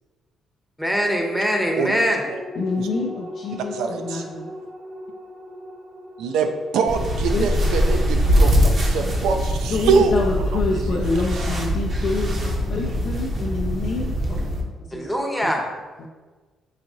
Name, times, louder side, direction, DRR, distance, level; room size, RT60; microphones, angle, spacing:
voice 1, 0.8-2.3 14.9-15.6, equal, ahead, 1 dB, 0.7 m, -22 dB
sound 1, 1.1-11.9 12.3-12.4, left 1 dB, 70° right, 1.1 m, -41 dB
voice 2, 2.6-4.5 7.3-7.5 9.7-14.5 14.8-15.1 15.4-15.5 16.0-16.1, left 3 dB, 65° left, -2 dB, 0.4 m, -27 dB
voice 3, 3.7-4.2 6.2-10.1, right 5 dB, 85° right, 5 dB, 0.4 m, -23 dB
sound 2, 6.9-14.6, equal, 50° right, 0.7 m, -22 dB
4.8 x 2.9 x 2.6 m, 1.3 s
cardioid pair, 90°, 0 cm